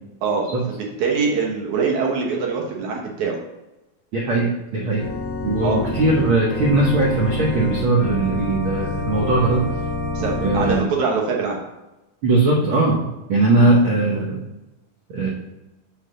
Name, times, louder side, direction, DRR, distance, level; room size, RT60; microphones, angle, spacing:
voice 1, 0.2-0.6 1.0-3.4 5.6-5.8 10.1-11.6, right 5 dB, 65° right, -1 dB, 2.2 m, -23 dB
voice 2, 4.1-5.1 5.4-9.6 10.4-10.9 12.2-14.4 15.1-15.3, right 2 dB, 90° right, -4 dB, 1.1 m, -19 dB
Organ, 5.0-10.8, left 1 dB, 55° left, 2.3 m, -27 dB
7.2 x 4.1 x 6.5 m, 1.0 s
omnidirectional pair, 4.1 m